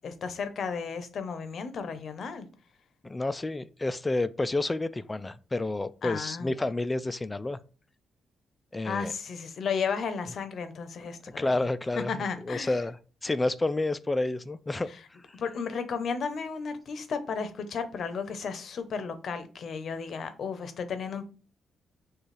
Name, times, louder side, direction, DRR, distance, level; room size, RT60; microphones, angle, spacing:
voice 1, 0.0-2.5 6.0-6.5 8.8-11.6 12.1-12.8 15.4-21.3, left 5 dB, 65° left, 0.7 m, -34 dB
voice 2, 3.0-7.6 8.7-9.1 11.4-13.0 13.2-14.9, left 2 dB, 20° left, 0.3 m, -29 dB
6.3 x 2.4 x 3.2 m
cardioid pair, 80°, 0 cm